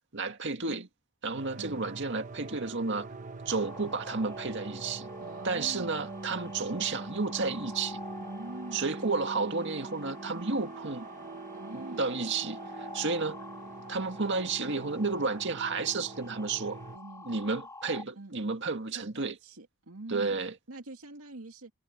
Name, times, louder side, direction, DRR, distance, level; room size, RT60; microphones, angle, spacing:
voice 1, 0.1-0.9 1.2-3.1 3.5-5.1 5.4-8.0 8.7-11.1 11.7-13.4 13.9-16.8 17.3-19.3 20.1-20.5, right 4 dB, 55° right, 2.0 m, -32 dB
sound 1, 1.4-17.0, right 3 dB, 35° right, 1.2 m, -43 dB
sound 2, 3.5-18.0, left 3 dB, 15° left, 5.3 m, -48 dB
voice 2, 5.2-6.1 8.2-8.9 10.3-10.6 11.5-12.1 14.6-15.0 16.9-17.5 18.2-18.4 18.9-20.4 20.7-21.7, right 2 dB, 85° right, 2.4 m, -45 dB
head